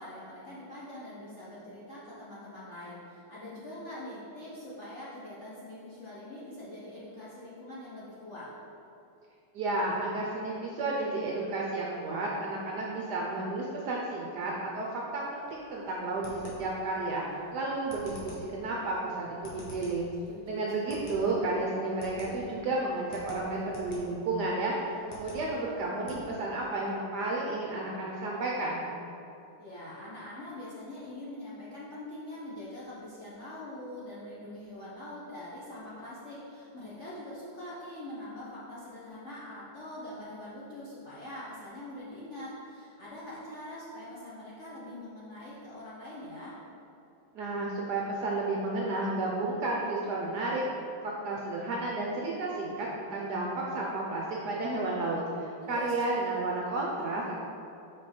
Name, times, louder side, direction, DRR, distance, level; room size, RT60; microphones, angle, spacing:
voice 1, 0.0-8.5 20.3-21.4 29.6-46.6 55.6-55.9, left 1 dB, 50° left, -8 dB, 0.9 m, -43 dB
voice 2, 9.5-17.2 17.5-20.1 20.5-28.9 47.3-50.6 51.0-57.3, right 2 dB, 70° right, -3 dB, 1.0 m, -32 dB
sound 1, 15.3-26.2, left 1 dB, 75° left, 2.1 m, -49 dB
5.2 x 5.0 x 4.3 m, 2.7 s
omnidirectional pair, 2.3 m